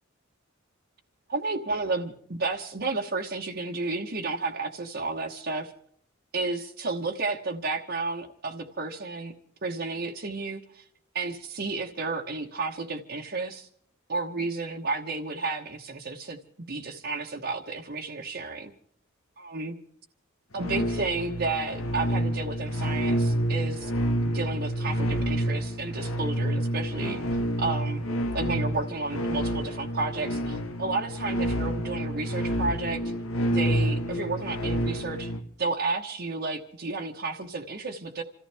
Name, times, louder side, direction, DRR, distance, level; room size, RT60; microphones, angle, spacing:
voice 1, 1.3-5.7 6.3-9.3 9.6-10.8 11.1-13.7 14.1-16.4 16.7-18.7 19.4-19.8 20.5-23.9 24.2-27.2 27.6-28.0 28.3-33.0 33.5-35.3 35.6-38.2, right 3 dB, 50° right, -1 dB, 1.2 m, -32 dB
sound 1, 20.6-35.4, equal, 90° left, 1.5 m, -28 dB
28.0 x 14.5 x 3.5 m, 0.64 s
head